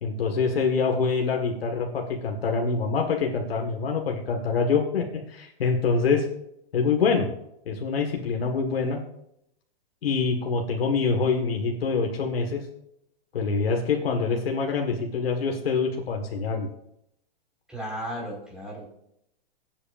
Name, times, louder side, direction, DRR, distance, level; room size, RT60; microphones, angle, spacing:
voice 1, 0.0-6.3 6.7-7.3 7.7-9.0 10.0-12.6 13.3-16.7, left 5 dB, 85° left, 2 dB, 1.8 m, -25 dB
voice 2, 17.7-18.9, equal, 5° right, -3 dB, 4.6 m, -35 dB
22.5 x 8.4 x 2.6 m, 0.78 s
hypercardioid pair, 140°, 29 cm